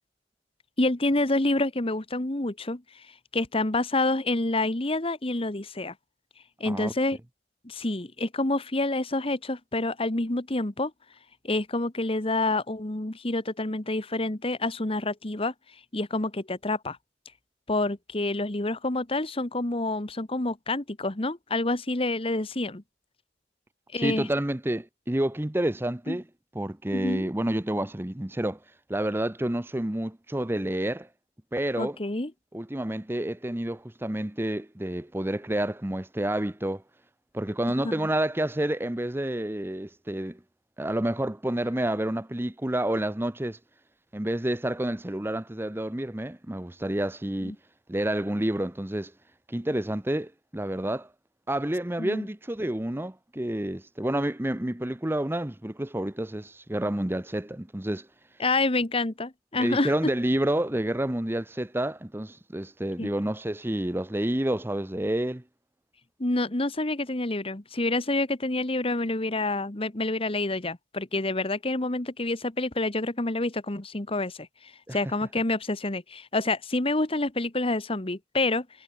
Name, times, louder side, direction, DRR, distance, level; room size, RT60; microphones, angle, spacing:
voice 1, 0.8-2.8 3.3-5.9 6.6-7.2 7.6-10.9 11.4-15.5 15.9-17.0 17.7-22.8 23.9-24.3 26.1-26.2 26.9-27.3 31.8-32.3 47.4-47.5 52.0-52.3 58.4-59.9 63.0-63.1 66.2-78.7, left 2 dB, 30° left, 1.4 m, -28 dB
voice 2, 24.0-26.2 26.5-28.6 28.9-31.1 31.5-32.0 32.5-36.8 37.3-40.4 40.8-43.6 44.1-47.5 47.9-49.1 49.5-51.1 51.5-58.1 59.6-65.4 74.9-75.0, right 1 dB, 10° right, 0.8 m, -29 dB
head